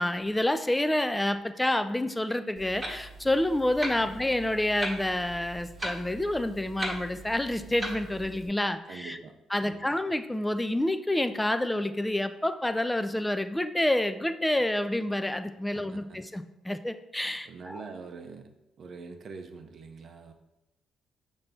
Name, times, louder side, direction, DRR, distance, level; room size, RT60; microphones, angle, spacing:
voice 1, 0.0-9.2 9.5-17.8, left 1 dB, 10° left, 9 dB, 0.3 m, -28 dB
Clock, 2.6-8.5, right 1 dB, 20° right, 1.1 m, -39 dB
voice 2, 8.8-9.3 9.6-9.8 15.7-16.2 17.4-18.5 18.8-20.3, right 4 dB, 55° right, 6 dB, 0.5 m, -44 dB
5.5 x 2.7 x 3.4 m, 0.95 s
cardioid pair, 90°, 0 cm